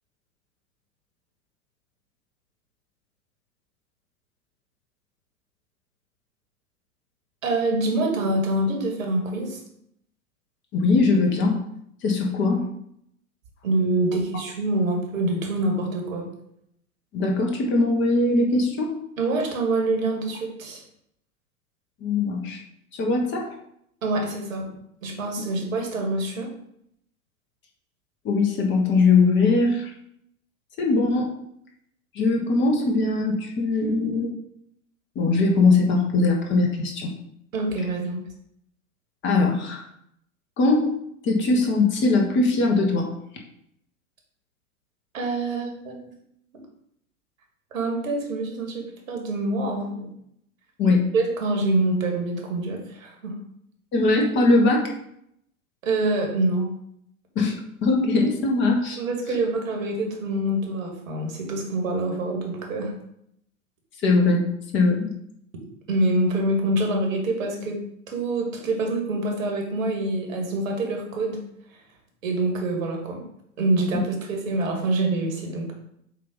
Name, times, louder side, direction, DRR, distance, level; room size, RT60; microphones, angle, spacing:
voice 1, 7.4-9.6 13.6-16.3 19.2-20.8 24.0-24.7 25.0-26.5 37.5-38.2 45.1-46.1 47.7-50.1 51.1-53.4 55.8-56.7 59.0-62.9 65.9-67.8 68.1-71.4 72.2-73.2 73.6-75.7, right 2 dB, 65° right, 1 dB, 2.2 m, -25 dB
voice 2, 10.7-11.6 12.0-12.6 17.1-18.9 22.0-22.6 23.0-23.5 28.2-29.9 30.8-31.3 32.1-34.3 35.1-37.1 39.2-39.8 40.6-40.9 41.2-43.1 50.8-51.0 53.9-54.9 57.3-57.5 57.8-59.0 64.0-64.5 64.7-65.1 73.9-74.0, left 3 dB, 25° left, 1 dB, 1.3 m, -21 dB
7.7 x 2.9 x 5.4 m, 0.73 s
figure-of-eight pair, 100°, 44 cm